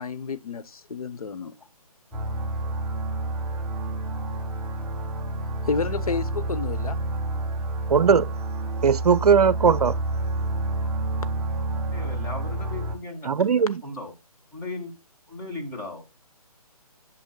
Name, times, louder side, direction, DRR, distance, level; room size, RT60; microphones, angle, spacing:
voice 1, 0.0-1.5 5.6-7.0, left 5 dB, 70° left, 0.9 m, -30 dB
sound 1, 2.1-13.0, right 2 dB, 5° right, 0.5 m, -29 dB
voice 2, 7.9-8.2 8.8-9.9 13.3-13.8, right 6 dB, 80° right, 0.5 m, -19 dB
voice 3, 11.9-14.1 14.5-14.9 15.3-16.0, left 2 dB, 10° left, 1.6 m, -37 dB
9.1 x 7.2 x 2.2 m
hypercardioid pair, 155°, 20 cm